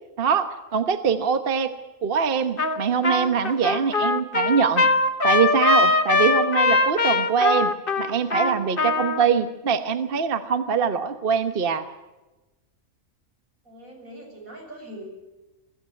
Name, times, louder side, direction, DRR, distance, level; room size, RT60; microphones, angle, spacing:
voice 1, 0.2-1.7 2.0-4.9 5.2-11.9, right 6 dB, 45° right, 9 dB, 1.2 m, -23 dB
Trumpet, 2.6-2.8 3.0-9.3, left 3 dB, 40° left, 1.8 m, -21 dB
voice 2, 13.6-15.1, right 1 dB, 85° right, 0 dB, 7.9 m, -41 dB
23.0 x 15.0 x 8.3 m, 1.1 s
omnidirectional pair, 1.4 m